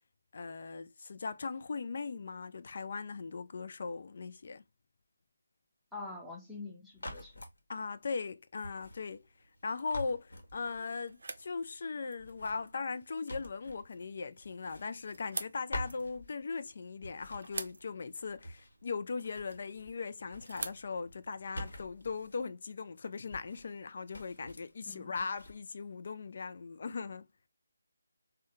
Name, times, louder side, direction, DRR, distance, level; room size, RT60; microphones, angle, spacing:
voice 1, 0.3-4.6 7.7-9.3 9.6-27.3, left 4 dB, 50° left, 0.4 m, -39 dB
voice 2, 5.9-7.4 24.9-25.1, left 3 dB, ahead, 0.7 m, -45 dB
sound 1, 6.9-7.6 8.6-9.6 9.9-11.0 12.2-14.1 14.4-15.4 15.7-16.7 17.0-18.8 19.1-20.0 20.3-22.4 23.3-23.8 24.1-24.8 25.2-25.6, left 1 dB, 70° left, 1.1 m, -47 dB
sound 2, 9.2-22.1, right 3 dB, 65° right, 0.5 m, -49 dB
3.5 x 2.2 x 2.7 m
figure-of-eight pair, 155°, 0 cm